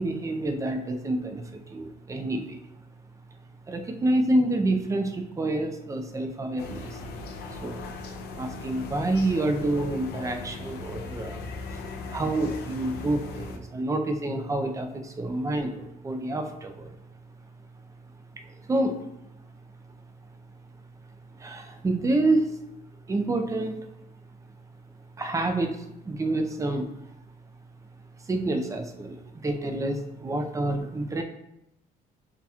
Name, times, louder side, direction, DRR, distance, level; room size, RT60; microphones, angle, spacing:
voice 1, 0.0-2.6 3.7-7.0 7.6-7.8 8.3-11.8 12.1-16.9 18.3-19.0 21.4-22.6 23.1-23.9 25.2-26.9 28.3-31.2, right 2 dB, 20° right, 6 dB, 0.6 m, -28 dB
sound 1, 6.6-13.6, left 3 dB, 75° left, 0.6 m, -38 dB
7.3 x 2.9 x 2.4 m, 0.84 s
cardioid pair, 110°, 17 cm